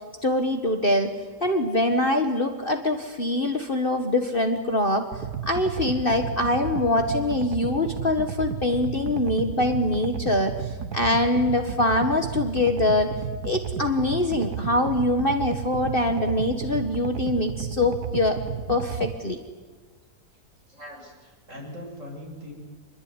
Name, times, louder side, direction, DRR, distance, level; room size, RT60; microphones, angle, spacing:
voice 1, 0.2-1.1 1.4-13.1 13.4-18.4 18.7-19.4, left 1 dB, 35° left, 5 dB, 1.8 m, -24 dB
sound 1, 5.1-19.1, right 7 dB, 70° right, 1.7 m, -33 dB
voice 2, 20.7-22.5, left 1 dB, 50° right, 0 dB, 8.3 m, -41 dB
26.5 x 21.0 x 9.9 m, 1.4 s
omnidirectional pair, 1.7 m